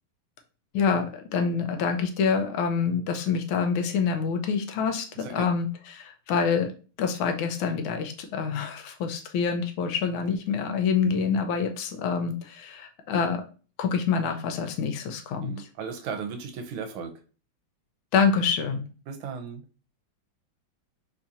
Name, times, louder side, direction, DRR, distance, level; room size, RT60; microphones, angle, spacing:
voice 1, 0.7-6.7 7.0-13.4 13.8-15.7 18.1-18.8, left 6 dB, 80° left, 5 dB, 1.4 m, -26 dB
voice 2, 15.4-17.1 19.1-19.6, right 6 dB, 85° right, 5 dB, 1.5 m, -36 dB
4.3 x 2.7 x 2.4 m, 0.36 s
omnidirectional pair, 2.3 m